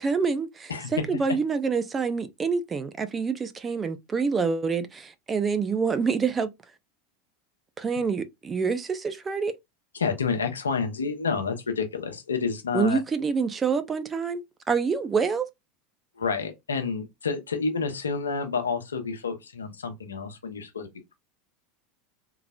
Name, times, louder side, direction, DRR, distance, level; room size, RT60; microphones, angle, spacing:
voice 1, 0.0-6.5 7.8-9.6 12.7-15.5, right 5 dB, 25° right, 0.6 m, -27 dB
voice 2, 9.9-13.0 16.2-21.1, left 5 dB, 90° left, 0.9 m, -29 dB
3.8 x 2.9 x 2.3 m
hypercardioid pair, 85°, 0 cm